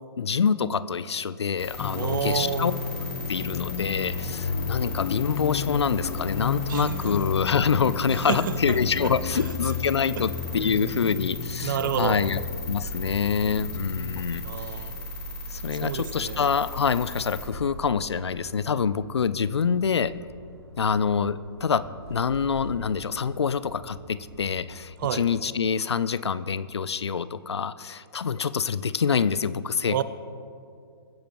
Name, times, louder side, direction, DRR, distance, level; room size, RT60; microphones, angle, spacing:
voice 1, 0.2-2.7 3.3-14.4 15.5-20.1 20.8-30.0, left 6 dB, 85° left, 16 dB, 0.5 m, -26 dB
sound 1, 1.6-17.5, left 2 dB, 5° left, 3.3 m, -37 dB
sound 2, 1.8-14.2, left 6 dB, 40° left, 0.8 m, -33 dB
voice 2, 1.9-2.7 6.7-7.0 8.3-9.5 10.2-10.3 11.6-12.3 14.4-14.9 15.7-16.4 25.0-25.3 29.9-30.0, right 9 dB, 50° right, 14 dB, 0.7 m, -30 dB
sound 3, 9.1-25.4, equal, 90° right, 2.6 m, -46 dB
22.0 x 10.0 x 3.1 m, 2.4 s
hypercardioid pair, 130°, 14 cm